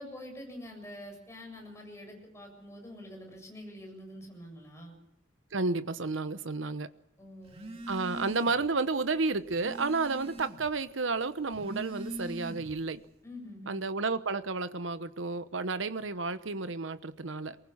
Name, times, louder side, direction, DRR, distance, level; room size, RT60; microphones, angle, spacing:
voice 1, 0.0-5.0 7.2-7.8 13.2-13.8, left 1 dB, 15° left, 2 dB, 7.6 m, -46 dB
voice 2, 5.5-6.9 7.9-13.0 13.7-17.6, right 3 dB, 90° right, 12 dB, 1.0 m, -31 dB
Telephone, 7.5-8.7 9.1-10.8 11.4-12.9, equal, 30° right, 2.3 m, -42 dB
23.0 x 20.0 x 7.3 m, 0.76 s
head